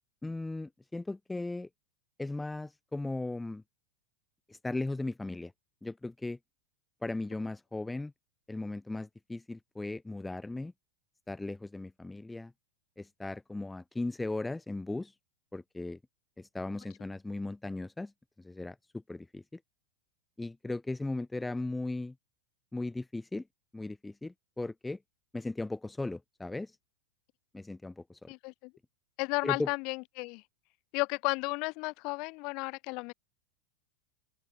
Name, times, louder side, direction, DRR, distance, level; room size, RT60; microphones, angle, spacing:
voice 1, 0.2-1.7 2.2-3.6 4.5-5.5 5.8-6.4 7.0-8.1 8.5-10.7 11.3-12.5 13.0-15.1 15.5-16.0 16.4-18.1 18.4-18.8 19.1-19.6 20.4-22.1 22.7-23.4 23.7-25.0 25.3-26.8 27.5-28.3 29.4-29.7, left 2 dB, 5° left, 2.1 m, -37 dB
voice 2, 28.3-28.7 29.2-30.4 30.9-33.1, left 28 dB, 45° left, 5.6 m, -33 dB
open air
figure-of-eight pair, 90°, 0 cm